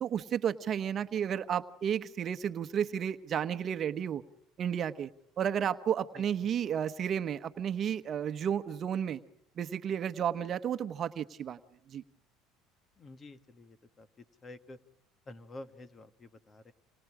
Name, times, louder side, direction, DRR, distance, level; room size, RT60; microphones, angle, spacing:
voice 1, 0.0-4.2 4.6-5.1 5.4-9.2 9.6-11.6 11.9-12.0, right 8 dB, 45° right, 10 dB, 1.1 m, -32 dB
voice 2, 13.0-14.1 14.4-14.8 15.3-16.7, left 2 dB, 30° left, 10 dB, 1.8 m, -49 dB
29.5 x 27.0 x 5.0 m, 0.66 s
supercardioid pair, 100°, 0 cm